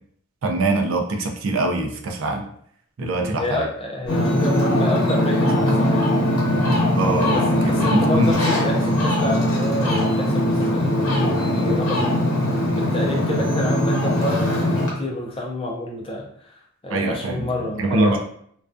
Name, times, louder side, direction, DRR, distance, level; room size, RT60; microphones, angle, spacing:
voice 1, 0.4-2.5 3.0-3.6 7.0-8.3 16.9-17.5 17.8-18.2, right 2 dB, 65° right, 3 dB, 0.4 m, -23 dB
voice 2, 3.0-6.1 7.0-12.1 12.4-18.2, left 1 dB, 25° left, -1 dB, 0.4 m, -29 dB
Ocean, 4.1-14.9, left 1 dB, 85° left, 0.7 m, -20 dB
2.3 x 2.2 x 2.4 m, 0.64 s
head